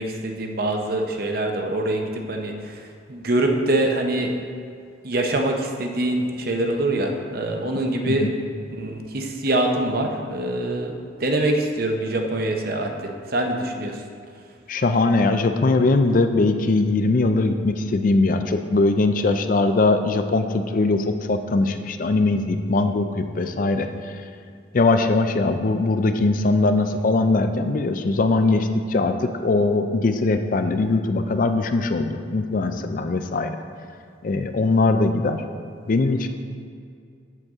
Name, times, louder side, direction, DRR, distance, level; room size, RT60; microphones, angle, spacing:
voice 1, 0.0-4.3 5.0-8.3 8.7-10.9 11.2-14.0, right 1 dB, 50° right, 3 dB, 0.7 m, -24 dB
voice 2, 14.7-24.3 24.7-33.6 34.2-35.4 35.9-36.3, left 3 dB, 45° left, 7 dB, 0.4 m, -21 dB
7.8 x 7.7 x 3.6 m, 2.3 s
head